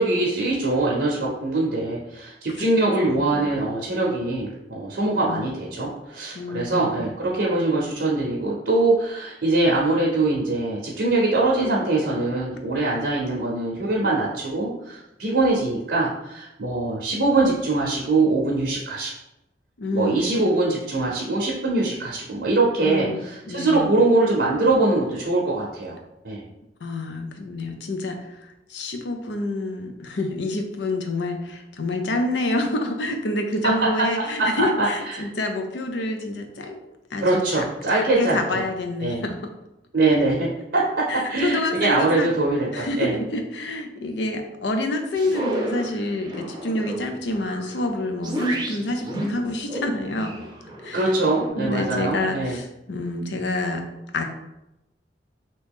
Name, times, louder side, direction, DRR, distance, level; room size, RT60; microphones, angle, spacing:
voice 1, 0.0-19.1 19.9-26.0 26.2-26.4 33.6-33.7 34.2-35.2 37.2-38.6 39.0-39.2 39.9-43.2 50.9-52.6, right 2 dB, 70° right, -4 dB, 0.7 m, -23 dB
voice 2, 3.0-3.5 5.3-5.4 6.3-6.9 19.8-20.4 22.8-23.9 26.8-36.8 37.1-37.7 37.9-39.4 41.1-42.3 42.7-50.4 50.8-51.1 51.6-53.8 54.1-54.2, left 2 dB, 80° left, 5 dB, 0.5 m, -28 dB
sound 1, 45.2-51.5, right 1 dB, 25° right, 0.5 m, -33 dB
2.9 x 2.7 x 3.5 m, 0.90 s
head